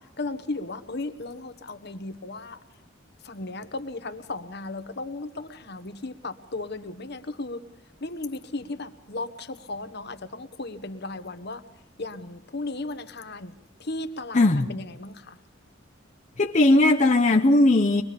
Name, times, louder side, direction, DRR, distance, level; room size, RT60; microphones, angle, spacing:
voice 1, 0.0-2.6 3.2-7.6 8.0-11.6 12.0-13.5 13.8-15.4, left 2 dB, 55° left, 10 dB, 1.2 m, -35 dB
voice 2, 14.3-14.7 16.4-18.0, left 2 dB, 35° left, 2 dB, 0.8 m, -18 dB
24.5 x 21.5 x 5.2 m, 0.83 s
head